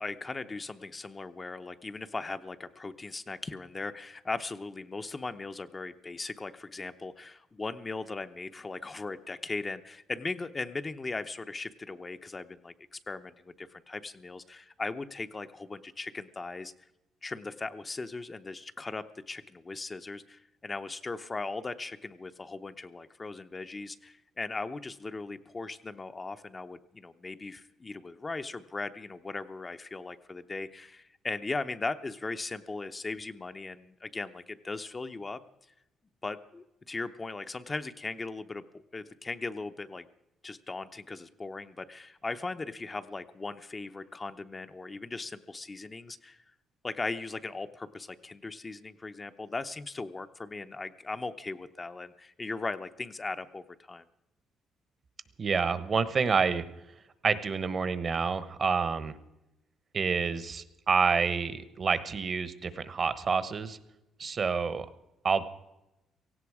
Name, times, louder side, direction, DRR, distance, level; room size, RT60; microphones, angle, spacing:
voice 1, 0.0-16.7 17.2-35.4 36.2-40.1 40.4-46.4 46.8-54.0, left 3 dB, 25° left, 9 dB, 0.8 m, -38 dB
voice 2, 55.4-56.6 57.2-59.1 59.9-63.8 64.2-64.9 65.2-65.5, right 5 dB, 40° right, 14 dB, 1.1 m, -28 dB
17.5 x 16.0 x 4.9 m, 0.93 s
cardioid pair, 95°, 0 cm